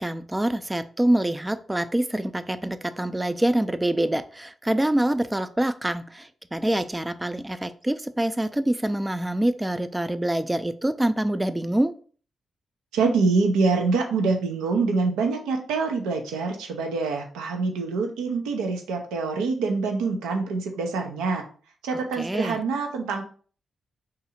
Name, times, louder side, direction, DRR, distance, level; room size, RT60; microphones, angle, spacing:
voice 1, 0.0-11.9 22.2-22.6, right 1 dB, 15° right, 12 dB, 0.3 m, -25 dB
voice 2, 12.9-21.4 21.8-23.2, right 4 dB, 85° right, 3 dB, 0.5 m, -25 dB
2.7 x 2.5 x 4.2 m, 0.42 s
hypercardioid pair, 40°, 0 cm